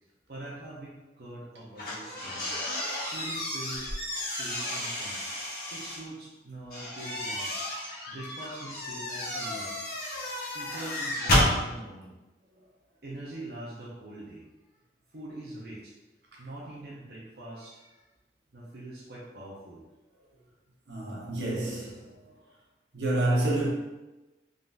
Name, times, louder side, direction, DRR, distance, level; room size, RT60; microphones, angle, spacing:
voice 1, 0.3-2.5 3.0-3.9 4.4-5.2 5.7-7.6 8.1-9.9 10.5-12.1 13.0-14.5 15.1-15.9 16.4-18.0 18.5-19.8, right 1 dB, 60° right, 0.8 m, -43 dB
sound 1, 1.8-6.0 6.7-11.5, left 1 dB, 55° left, 1.3 m, -31 dB
voice 2, 20.9-22.1 22.9-23.7, right 1 dB, 80° right, 1.0 m, -28 dB
3.9 x 3.7 x 2.6 m
head